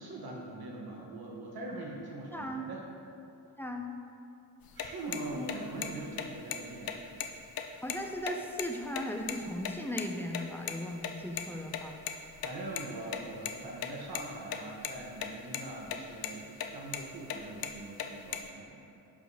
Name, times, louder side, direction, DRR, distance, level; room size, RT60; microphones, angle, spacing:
voice 1, 0.0-2.9 4.7-7.0 12.4-18.8, right 2 dB, 85° right, -2 dB, 1.0 m, -42 dB
voice 2, 2.3-2.7 3.6-3.9 5.3-5.5 7.8-12.0, left 1 dB, 5° left, 2 dB, 0.4 m, -37 dB
sound 1, 4.6-9.7 10.0-10.1 10.3-10.4 10.7-10.8 11.0-11.1 11.4-11.5 11.7-12.8 13.1-13.5 13.8-14.6 14.8-15.3 15.5-16.0 16.2-16.3 16.6-17.0 17.3-18.5, left 9 dB, 75° left, 0.5 m, -36 dB
11.0 x 4.7 x 2.7 m, 2.6 s
wide cardioid pair, 120°, 36 cm